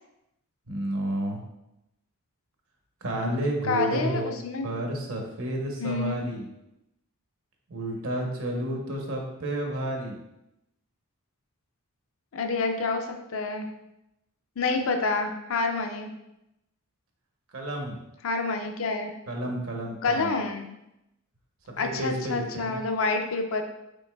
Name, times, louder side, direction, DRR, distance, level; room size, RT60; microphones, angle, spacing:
voice 1, 0.7-1.4 3.0-4.3 4.6-6.5 7.7-10.2 17.5-18.0 19.3-20.3 21.8-22.8, right 1 dB, 75° right, 1 dB, 0.9 m, -31 dB
voice 2, 3.6-4.7 5.8-6.2 12.3-13.7 14.6-16.1 18.2-19.1 20.0-20.7 21.8-23.6, left 3 dB, 70° left, 5 dB, 0.5 m, -28 dB
5.2 x 3.8 x 2.3 m, 0.87 s
head